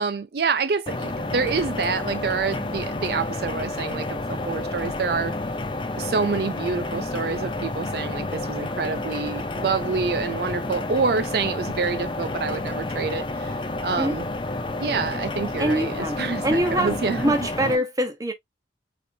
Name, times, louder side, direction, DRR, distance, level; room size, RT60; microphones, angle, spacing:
voice 1, 0.0-5.4 6.0-14.2 14.8-17.4 17.6-17.8, right 4 dB, 55° right, 0.4 m, -27 dB
sound 1, 0.9-17.8, left 2 dB, 25° left, 0.6 m, -30 dB
voice 2, 15.6-18.3, right 1 dB, 20° right, 1.0 m, -24 dB
4.4 x 4.1 x 2.7 m
head